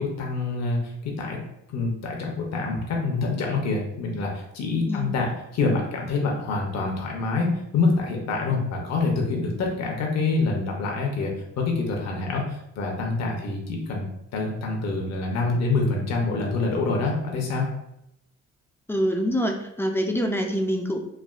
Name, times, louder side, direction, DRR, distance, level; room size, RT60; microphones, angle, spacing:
voice 1, 0.0-1.4 1.7-14.1 14.3-17.7, left 3 dB, 60° left, 0 dB, 0.7 m, -26 dB
voice 2, 4.9-5.2 18.9-21.0, equal, 10° left, 3 dB, 0.3 m, -25 dB
3.3 x 2.2 x 2.4 m, 0.81 s
cardioid pair, 90°, 30 cm